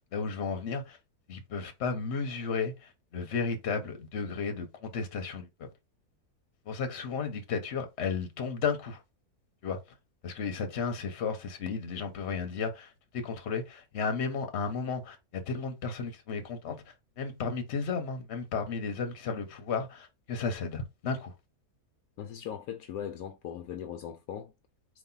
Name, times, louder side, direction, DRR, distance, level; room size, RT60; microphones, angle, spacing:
voice 1, 0.1-1.0 1.3-5.7 6.7-9.0 9.6-9.8 10.2-16.8 17.2-21.3, left 5 dB, 50° left, 1.1 m, -33 dB
voice 2, 22.2-24.5, left 9 dB, 75° left, 1.0 m, -39 dB
4.2 x 2.6 x 3.8 m
omnidirectional pair, 1.6 m